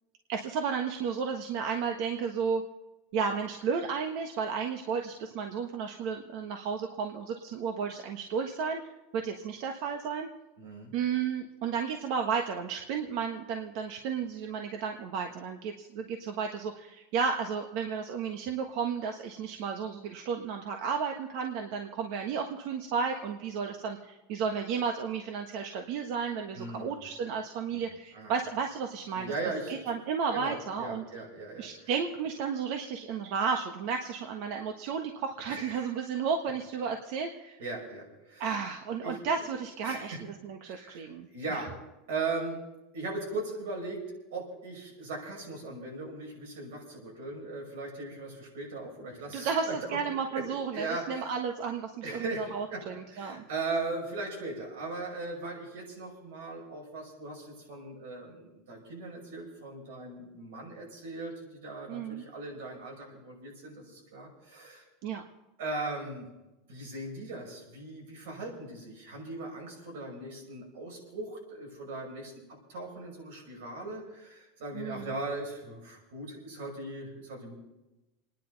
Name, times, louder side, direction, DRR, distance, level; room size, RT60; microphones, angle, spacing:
voice 1, 0.3-2.6 3.1-8.8 9.1-10.3 10.9-29.3 29.9-31.0 31.6-37.6 38.4-41.6 49.3-53.4 61.9-62.2 65.0-65.2 74.7-75.1, right 6 dB, 60° right, 4 dB, 1.3 m, -33 dB
voice 2, 10.6-10.9 26.5-26.9 27.7-27.8 28.1-28.3 29.1-29.8 30.3-31.9 35.5-35.9 37.6-38.5 39.0-39.5 39.8-40.2 40.6-41.7 42.1-42.6 42.9-44.0 44.3-49.8 50.3-50.4 50.7-51.3 52.0-64.8 65.6-66.3 66.7-72.3 72.7-77.5, right 3 dB, 90° right, 0 dB, 6.0 m, -39 dB
29.5 x 10.0 x 4.0 m, 1.0 s
supercardioid pair, 155°, 0 cm